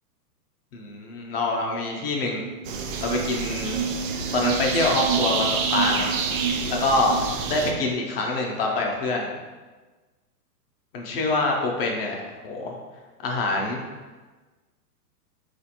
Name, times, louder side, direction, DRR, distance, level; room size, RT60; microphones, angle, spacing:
voice 1, 0.7-2.4 3.0-3.9 4.3-6.1 6.7-7.2 7.5-9.3 10.9-12.7 13.2-13.8, left 2 dB, 40° left, 0 dB, 0.5 m, -25 dB
sound 1, 2.3-8.0, right 6 dB, 85° right, 1.0 m, -31 dB
sound 2, 2.6-7.7, right 5 dB, 55° right, 0.5 m, -29 dB
3.6 x 2.5 x 2.8 m, 1.3 s
hypercardioid pair, 135°, 47 cm